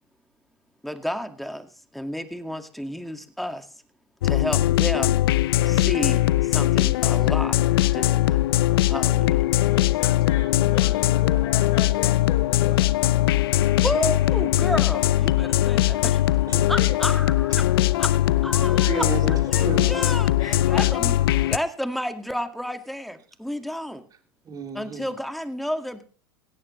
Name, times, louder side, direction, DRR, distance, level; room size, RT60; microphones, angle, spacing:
voice 1, 0.8-3.7 4.2-5.2 5.7-7.6 7.9-8.4 8.9-9.5 13.8-16.0 16.7-17.7 18.0-18.1 18.4-19.0 19.5-21.1 21.5-24.1 24.7-26.0, equal, ahead, 7 dB, 1.9 m, -31 dB
sound 1, 4.2-21.6, left 14 dB, 70° left, 0.6 m, -21 dB
voice 2, 9.6-12.9 16.6-17.1 18.7-19.1 20.4-20.9, left 8 dB, 55° left, 1 dB, 6.7 m, -36 dB
voice 3, 16.3-16.7 18.9-20.0 24.4-25.1, right 5 dB, 30° right, 3 dB, 3.9 m, -32 dB
17.5 x 17.0 x 3.2 m, 0.40 s
hypercardioid pair, 95°, 13 cm